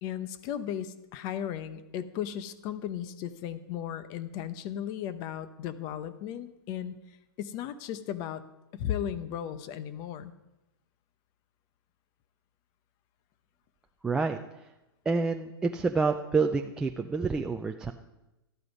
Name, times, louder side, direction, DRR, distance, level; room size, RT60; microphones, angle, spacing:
voice 1, 0.0-6.9 7.4-8.4 8.7-10.3, left 10 dB, 30° left, 13 dB, 0.8 m, -35 dB
voice 2, 14.0-14.4 15.1-17.9, right 4 dB, 5° right, 3 dB, 0.3 m, -28 dB
13.5 x 11.0 x 5.4 m, 0.98 s
supercardioid pair, 160°, 13 cm